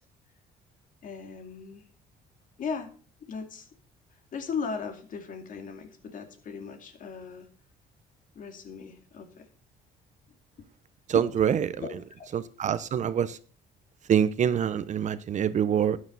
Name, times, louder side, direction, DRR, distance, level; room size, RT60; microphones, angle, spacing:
voice 1, 1.0-1.8 2.6-2.9 3.2-3.7 4.3-7.5 8.3-9.5 11.1-11.2 11.8-12.3, left 5 dB, 50° left, 2.4 m, -37 dB
voice 2, 11.1-11.8 12.3-13.4 14.1-16.0, right 8 dB, 45° right, 0.8 m, -25 dB
12.5 x 9.7 x 4.1 m
cardioid pair, 110°, 17 cm